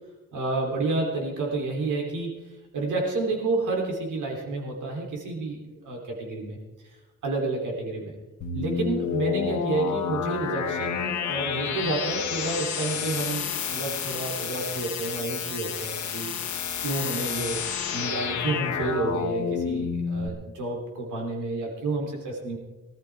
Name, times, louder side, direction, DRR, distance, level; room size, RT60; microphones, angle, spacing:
voice 1, 0.3-2.4 2.7-6.6 7.2-8.1 8.5-16.3 16.8-17.6 17.9-22.6, right 3 dB, 85° right, 0 dB, 3.4 m, -30 dB
sound 1, 8.4-20.3, left 7 dB, 75° left, 1.7 m, -30 dB
21.0 x 14.0 x 3.6 m, 1.1 s
cardioid pair, 70°, 30 cm